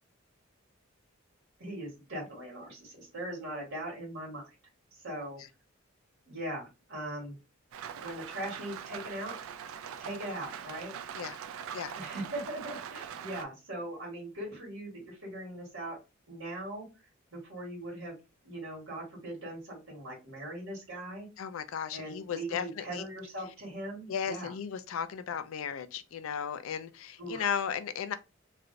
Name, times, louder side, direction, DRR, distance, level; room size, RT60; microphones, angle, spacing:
voice 1, 1.6-4.4 4.9-5.4 6.3-7.4 8.0-9.3 10.0-10.9 11.9-16.0 16.3-16.8 17.3-18.2 18.4-21.3 21.9-24.5 27.2-27.6, right 1 dB, 70° right, 1.6 m, -40 dB
Rain, 7.7-13.4, right 8 dB, 85° right, 0.3 m, -42 dB
voice 2, 21.4-23.0 24.1-28.2, left 7 dB, 80° left, 0.4 m, -35 dB
3.1 x 2.4 x 2.6 m
head